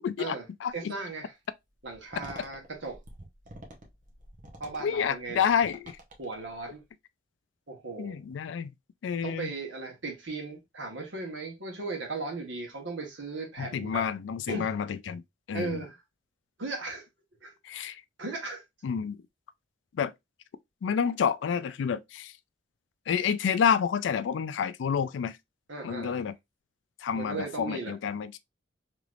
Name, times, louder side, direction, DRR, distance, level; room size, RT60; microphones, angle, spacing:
voice 1, 0.0-0.4 0.6-0.9 4.8-5.9 8.0-8.7 9.0-9.5 13.6-15.2 15.5-15.8 17.6-18.0 18.8-19.2 19.9-20.1 20.8-22.3 23.1-25.4 25.8-26.4 27.0-28.4, left 7 dB, 75° left, 0.3 m, -29 dB
voice 2, 0.7-1.3 1.8-3.0 4.6-5.5 6.2-6.8 7.7-8.2 9.2-14.0 14.5-14.7 15.5-16.0 16.6-17.1 17.4-17.5 17.8-17.9 18.2-18.6 25.7-26.2 27.1-27.9, right 3 dB, 85° right, 1.3 m, -37 dB
sound 1, 1.8-6.8, right 1 dB, 45° right, 0.8 m, -48 dB
3.2 x 2.9 x 2.4 m
head